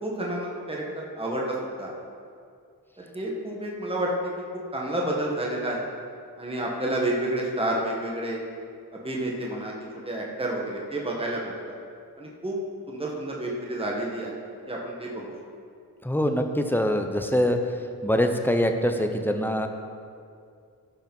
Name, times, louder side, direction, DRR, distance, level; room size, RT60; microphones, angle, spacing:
voice 1, 0.0-1.9 3.0-4.3 4.7-5.8 6.4-8.4 8.9-9.7 10.0-11.5 12.2-12.6 12.9-14.4 14.7-15.3, right 1 dB, 15° right, -2 dB, 1.6 m, -30 dB
voice 2, 16.0-17.6 18.0-19.7, equal, 5° left, 5 dB, 0.9 m, -24 dB
15.0 x 5.4 x 5.5 m, 2.3 s
cardioid pair, 80°, 37 cm